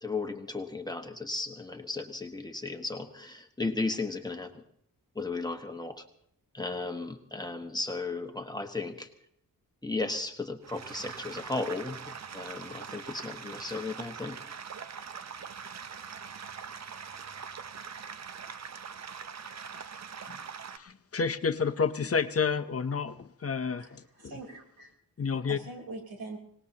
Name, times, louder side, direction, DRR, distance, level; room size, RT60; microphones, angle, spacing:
voice 1, 0.0-4.6 5.1-6.0 6.5-9.1 9.8-14.4, left 3 dB, 10° left, 4 dB, 1.3 m, -35 dB
sound 1, 10.6-20.8, right 6 dB, 50° right, 0.7 m, -42 dB
voice 2, 20.7-24.0 25.2-25.6, left 5 dB, 40° left, 11 dB, 0.7 m, -30 dB
voice 3, 24.2-24.9 25.5-26.4, right 2 dB, 90° right, 0 dB, 3.8 m, -43 dB
25.5 x 19.0 x 2.9 m, 0.71 s
wide cardioid pair, 135°, 35 cm